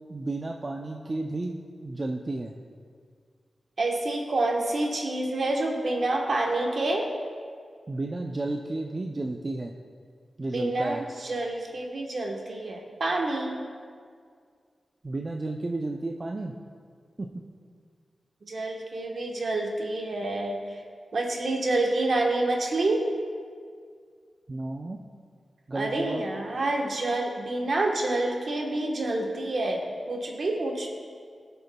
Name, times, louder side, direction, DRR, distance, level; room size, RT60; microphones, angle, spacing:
voice 1, 0.1-2.5 7.9-9.7 10.4-11.0 15.0-16.5 17.2-17.3 24.5-25.0 25.7-26.2, right 2 dB, 30° right, 1 dB, 0.4 m, -32 dB
voice 2, 3.8-7.1 10.5-13.6 18.4-20.6 21.1-23.0 25.7-30.9, right 2 dB, 55° right, 1 dB, 1.1 m, -28 dB
18.5 x 6.7 x 2.2 m, 2.1 s
wide cardioid pair, 140°, 0 cm